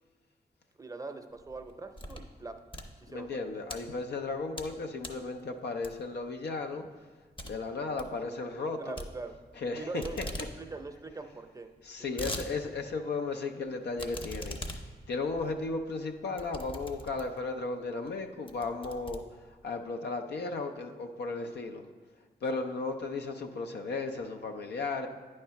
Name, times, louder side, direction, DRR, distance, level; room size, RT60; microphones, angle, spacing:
voice 1, 0.8-2.6 3.0-3.5 8.8-9.4 9.8-11.7 12.1-12.3, right 3 dB, 20° right, 6 dB, 0.6 m, -42 dB
sound 1, 1.4-2.3 2.6-3.8 4.3-4.7 5.0-5.3 5.8-6.2 6.6-6.7 7.0-7.1 7.4-7.5 7.8-8.1 9.0-9.7 10.0-10.5 10.9-11.0 11.1-11.2 11.8-12.5 12.9-13.0 14.0-17.5 18.0-18.2 18.5-19.7, left 1 dB, 30° left, 0.7 m, -41 dB
voice 2, 3.1-6.8 7.4-8.9 9.6-10.2 11.8-14.8 15.1-19.2 19.6-21.8 22.4-25.1, left 3 dB, 85° left, 5 dB, 0.5 m, -35 dB
9.1 x 3.2 x 5.7 m, 1.4 s
cardioid pair, 75°, 17 cm